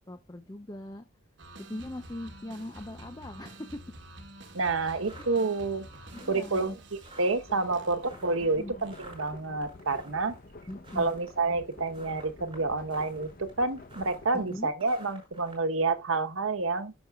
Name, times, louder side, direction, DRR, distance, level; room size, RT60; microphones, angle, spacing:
voice 1, 0.1-1.1 1.6-3.8 4.8-5.0 6.1-6.8 8.4-8.8 10.7-11.1 14.3-14.7, left 1 dB, 20° left, 0.6 m, -41 dB
sound 1, 1.4-9.4, right 1 dB, 55° right, 1.4 m, -49 dB
voice 2, 4.5-5.9 6.3-10.3 11.0-16.9, right 3 dB, 80° right, 1.1 m, -29 dB
sound 2, 4.9-15.6, right 1 dB, 25° right, 5.4 m, -52 dB
sound 3, 7.4-14.5, left 2 dB, 45° left, 0.9 m, -49 dB
10.5 x 6.2 x 2.4 m
head